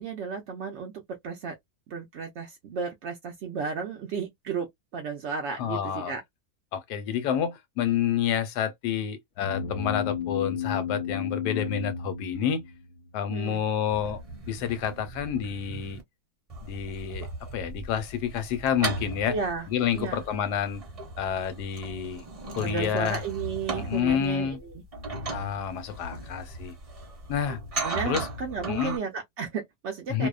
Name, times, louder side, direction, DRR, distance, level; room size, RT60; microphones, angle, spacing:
voice 1, 0.0-1.6 1.9-4.7 4.9-6.2 13.3-13.6 19.3-19.7 19.9-20.2 22.6-24.8 25.1-25.3 27.8-30.3, right 5 dB, 75° right, 0.6 m, -33 dB
voice 2, 5.6-6.1 6.7-12.6 13.1-14.2 14.5-16.0 16.6-17.3 17.5-19.4 19.7-20.8 21.2-22.2 22.6-23.2 23.8-24.6 25.3-26.7 27.3-27.6 28.1-28.3 28.7-29.0 30.1-30.3, left 8 dB, 85° left, 1.2 m, -29 dB
sound 1, 9.4-13.1, left 8 dB, 65° left, 0.8 m, -33 dB
sound 2, 13.9-16.0 16.5-29.0, right 2 dB, 30° right, 0.8 m, -37 dB
2.7 x 2.1 x 2.3 m
omnidirectional pair, 1.7 m